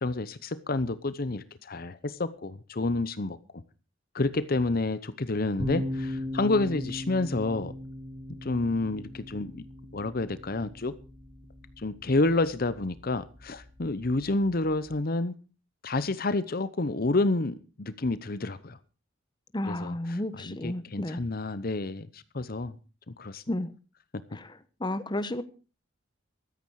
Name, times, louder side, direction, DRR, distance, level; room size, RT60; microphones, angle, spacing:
voice 1, 0.0-3.4 4.1-7.7 8.4-9.6 9.9-10.9 11.8-15.3 15.8-18.8 19.7-22.7 23.1-23.4, left 2 dB, 45° left, 0.8 m, -29 dB
sound 1, 5.6-15.0, left 1 dB, 25° right, 2.1 m, -39 dB
voice 2, 19.5-21.2 23.5-23.7 24.3-24.4 24.8-25.4, left 1 dB, 20° left, 0.9 m, -32 dB
14.5 x 13.5 x 4.8 m
head